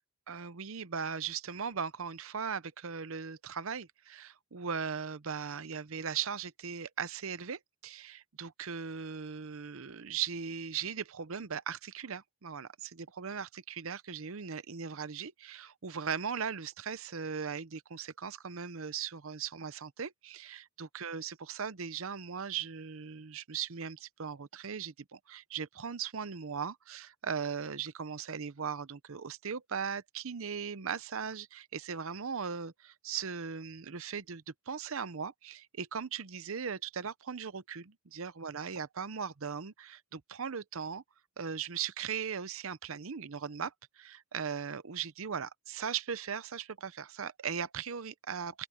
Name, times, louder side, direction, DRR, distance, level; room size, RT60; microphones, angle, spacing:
voice 1, 0.3-41.0 41.4-48.7, right 6 dB, 65° right, 0.7 m, -38 dB
open air
head